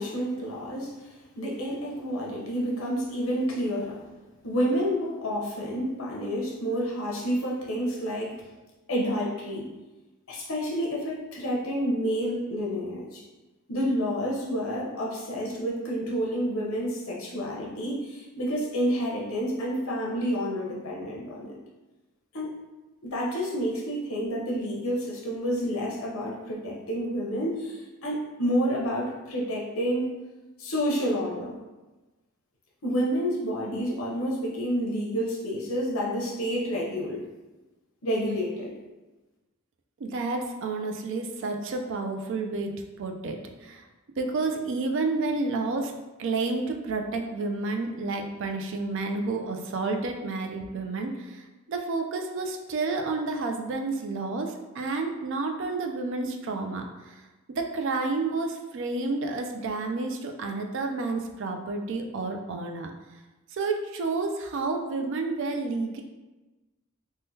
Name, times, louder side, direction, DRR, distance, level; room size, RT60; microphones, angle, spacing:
voice 1, 0.0-4.0 4.4-8.5 8.9-9.7 10.3-13.2 13.7-21.6 22.3-22.6 23.0-30.1 30.6-31.6 32.8-37.2 38.0-38.7, equal, 70° left, -3 dB, 0.8 m, -29 dB
voice 2, 40.0-43.8 44.2-45.9 46.2-57.2 57.5-62.9 63.5-66.0, right 3 dB, 60° right, 4 dB, 0.3 m, -30 dB
3.5 x 2.2 x 2.7 m, 1.1 s
head